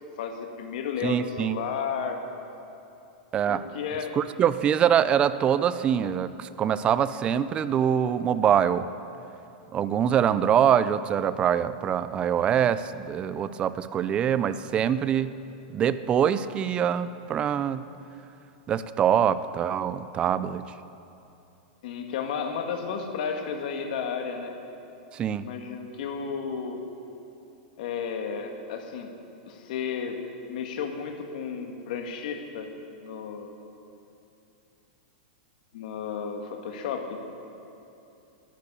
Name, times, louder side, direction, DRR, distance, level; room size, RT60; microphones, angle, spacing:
voice 1, 0.2-2.3 3.5-4.2 21.8-24.6 25.4-26.8 27.8-29.1 29.5-30.2 30.5-32.7 33.0-33.5 35.7-37.2, left 6 dB, 60° left, 5 dB, 1.8 m, -33 dB
voice 2, 1.0-1.6 3.3-3.6 4.1-8.9 9.7-15.3 15.7-17.8 18.7-20.6 25.1-25.5, right 9 dB, 20° right, 14 dB, 0.4 m, -24 dB
12.0 x 10.5 x 8.3 m, 2.8 s
supercardioid pair, 150°, 5 cm